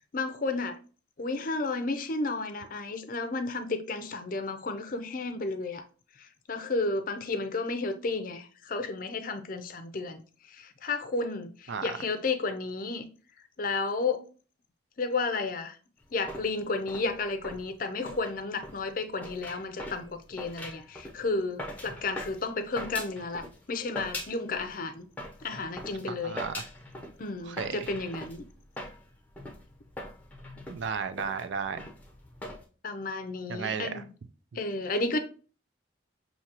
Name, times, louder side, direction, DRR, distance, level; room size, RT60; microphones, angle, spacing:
voice 1, 0.1-0.8 1.2-5.8 6.2-10.2 10.5-13.1 13.6-14.2 15.0-15.8 16.1-25.1 25.4-26.4 27.2-28.4 32.8-34.1 34.5-35.2, left 3 dB, 45° left, 0.5 m, -32 dB
sound 1, 16.0-23.6 24.0-24.8 25.1-32.6, left 1 dB, 10° left, 0.7 m, -42 dB
voice 2, 26.1-26.5 27.5-27.9 30.7-31.9 33.5-34.0, right 6 dB, 70° right, 0.4 m, -34 dB
5.9 x 2.8 x 2.9 m
head